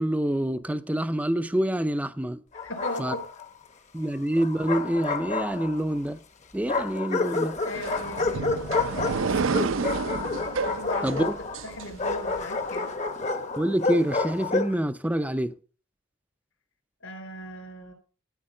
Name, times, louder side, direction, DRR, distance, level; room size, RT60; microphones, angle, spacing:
voice 1, 0.0-2.4 3.0-3.1 3.9-6.2 6.5-7.6 11.0-11.3 13.6-15.5, right 1 dB, 5° right, 0.4 m, -26 dB
voice 2, 2.5-3.3 7.6-8.6 10.7-11.3 11.6-12.9 17.0-17.9, left 1 dB, 70° left, 3.6 m, -37 dB
Bark, 2.5-3.5 4.4-6.0 6.7-14.8, left 3 dB, 35° left, 0.9 m, -29 dB
sound 1, 7.7-12.4, right 4 dB, 65° right, 0.5 m, -30 dB
13.0 x 4.6 x 6.4 m
head